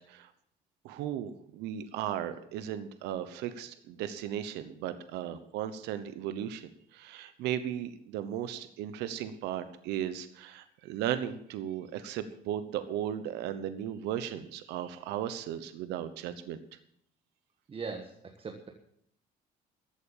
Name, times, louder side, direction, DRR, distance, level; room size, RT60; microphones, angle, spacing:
voice 1, 0.8-16.6, right 10 dB, 90° right, 11 dB, 1.0 m, -36 dB
voice 2, 17.7-18.7, right 4 dB, 35° right, 4 dB, 1.4 m, -40 dB
14.0 x 8.6 x 7.2 m, 0.68 s
cardioid pair, 110°, 17 cm